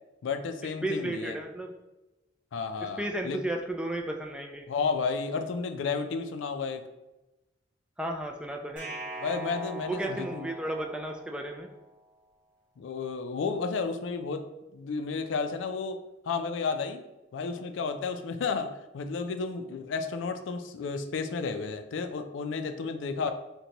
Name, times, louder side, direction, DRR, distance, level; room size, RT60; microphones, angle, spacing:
voice 1, 0.2-1.4 2.5-3.4 4.7-6.8 9.2-10.5 12.8-14.5 14.7-16.0 16.3-17.0 17.3-23.3, left 4 dB, 80° left, 8 dB, 0.4 m, -32 dB
voice 2, 0.8-1.7 2.8-4.7 8.0-8.9 9.8-11.7, right 1 dB, 5° right, 2 dB, 0.3 m, -33 dB
sound 1, 8.8-11.8, right 2 dB, 45° right, 0.9 m, -41 dB
3.9 x 2.2 x 2.9 m, 1.0 s
head